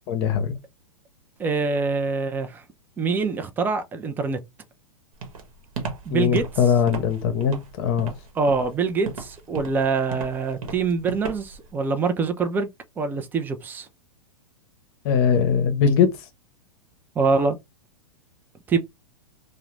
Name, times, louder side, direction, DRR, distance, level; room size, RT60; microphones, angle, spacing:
voice 1, 0.1-0.6 6.1-8.1 15.0-16.1, left 7 dB, 45° left, 0.7 m, -21 dB
voice 2, 1.4-2.6 3.0-4.4 6.1-6.4 8.4-12.7 13.0-13.9 17.2-17.6 18.7-18.8, right 4 dB, 10° right, 0.3 m, -24 dB
Walk footsteps, 5.2-11.7, right 4 dB, 70° right, 0.9 m, -35 dB
2.3 x 2.0 x 3.1 m
hypercardioid pair, 120°, 18 cm